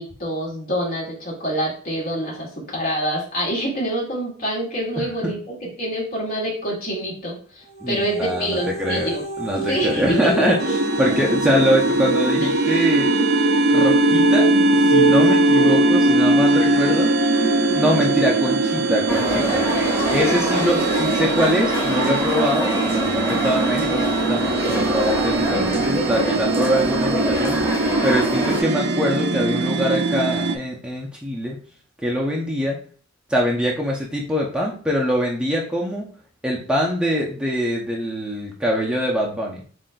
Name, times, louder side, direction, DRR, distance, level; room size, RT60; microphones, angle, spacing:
voice 1, 0.0-9.2 9.5-10.5, right 1 dB, 50° left, -4 dB, 2.0 m, -26 dB
voice 2, 5.0-5.3 7.8-9.1 9.4-13.1 13.7-17.1 17.7-19.6 20.1-27.7 28.0-31.6 32.0-32.8 33.3-36.1 36.4-39.6, equal, 5° right, -3 dB, 0.5 m, -23 dB
sound 1, 7.7-20.5, right 3 dB, 80° left, 1.4 m, -27 dB
sound 2, 10.6-30.6, right 2 dB, 55° right, 0.4 m, -21 dB
sound 3, 19.1-28.6, equal, 15° left, 1.6 m, -25 dB
7.5 x 2.5 x 2.2 m, 0.43 s
head